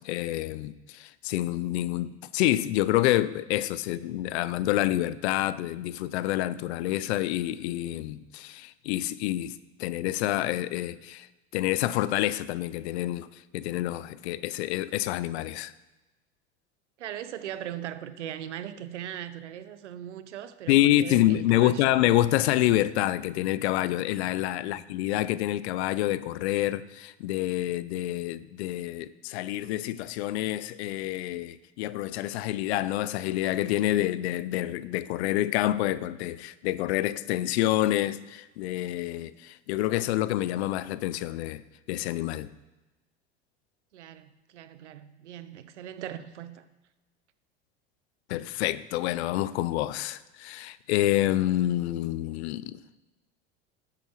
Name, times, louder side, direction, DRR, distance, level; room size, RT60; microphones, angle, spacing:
voice 1, 0.0-9.5 9.8-11.3 11.5-15.7 20.7-41.6 41.9-42.5 48.3-52.8, left 14 dB, 70° left, 0.6 m, -27 dB
voice 2, 17.0-22.0 24.6-24.8 43.9-46.6, right 10 dB, 85° right, 0.8 m, -39 dB
12.5 x 7.8 x 3.1 m
hypercardioid pair, 85°, 34 cm